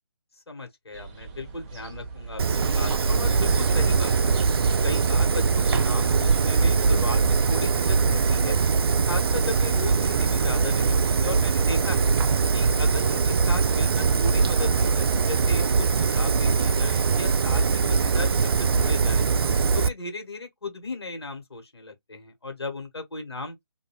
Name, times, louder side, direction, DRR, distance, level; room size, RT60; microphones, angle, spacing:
voice 1, 0.5-4.4 4.8-8.6 9.1-12.1 12.5-19.3 19.7-23.6, left 3 dB, 85° left, 1.5 m, -36 dB
sound 1, 0.9-6.6, right 4 dB, 20° right, 0.6 m, -42 dB
Fire, 2.4-19.9, right 5 dB, 70° right, 0.4 m, -22 dB
2.6 x 2.4 x 3.1 m
figure-of-eight pair, 155°, 13 cm